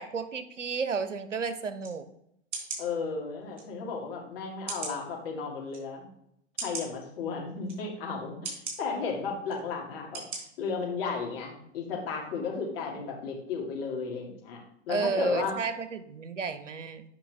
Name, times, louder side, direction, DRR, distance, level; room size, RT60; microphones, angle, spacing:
voice 1, 0.0-2.1 14.9-17.0, right 5 dB, 85° right, 11 dB, 0.9 m, -32 dB
sound 1, 1.8-1.9 2.5-2.8 3.6-3.7 4.7-5.0 5.7-5.8 6.6-6.9 7.7-7.8 8.4-8.8 9.5-9.6 10.1-10.4 10.8-10.9, right 4 dB, 70° right, 3.3 m, -36 dB
voice 2, 2.8-6.1 6.6-10.2 10.6-14.6 14.9-15.5, left 5 dB, 50° left, -1 dB, 2.4 m, -34 dB
8.5 x 5.6 x 3.4 m, 0.76 s
hypercardioid pair, 105°, 36 cm